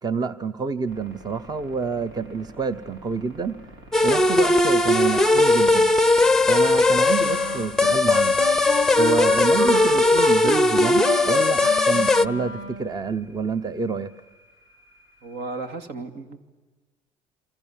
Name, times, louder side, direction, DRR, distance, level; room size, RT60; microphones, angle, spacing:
voice 1, 0.0-3.6 4.0-5.9 6.4-8.4 9.0-14.1, right 5 dB, 25° right, 13 dB, 0.9 m, -28 dB
sound 1, 0.9-15.9, right 1 dB, 85° right, 4.1 m, -48 dB
sound 2, 3.9-12.3, left 2 dB, 5° left, 0.8 m, -18 dB
Wind instrument woodwind instrument, 7.2-12.9, right 2 dB, 40° right, 5.4 m, -33 dB
voice 2, 15.2-16.4, right 3 dB, 65° right, 8 dB, 2.5 m, -34 dB
27.5 x 25.5 x 7.4 m, 1.3 s
supercardioid pair, 80°, 17 cm